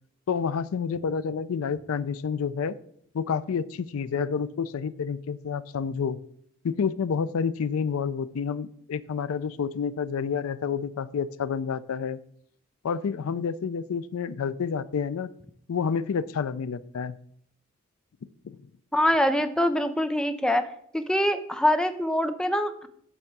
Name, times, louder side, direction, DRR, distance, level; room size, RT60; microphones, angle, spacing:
voice 1, 0.3-2.8 3.1-6.2 6.6-12.2 12.8-15.3 15.7-17.2 18.4-18.6, left 6 dB, 80° left, 16 dB, 0.4 m, -29 dB
voice 2, 18.9-20.6 20.9-22.9, left 1 dB, 5° left, 9 dB, 0.5 m, -24 dB
8.5 x 3.5 x 6.6 m, 0.67 s
head